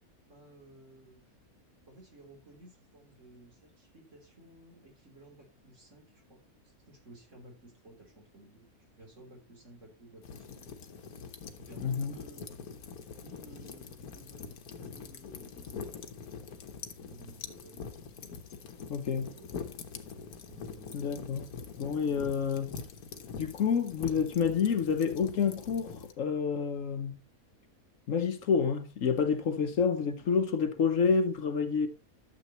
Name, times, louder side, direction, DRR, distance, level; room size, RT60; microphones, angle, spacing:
voice 1, 0.3-1.2 1.9-10.7 11.6-12.5 13.2-16.0 17.1-17.8 19.1-19.6 20.4-21.5, right 2 dB, 55° right, 3.7 m, -55 dB
sound 1, 10.2-26.1, left 6 dB, 85° left, 1.5 m, -44 dB
voice 2, 11.8-12.1 18.9-19.3 20.9-21.5 21.8-22.7 23.4-27.2 28.1-31.9, left 6 dB, 65° left, 1.2 m, -28 dB
12.5 x 7.5 x 3.0 m
omnidirectional pair, 1.5 m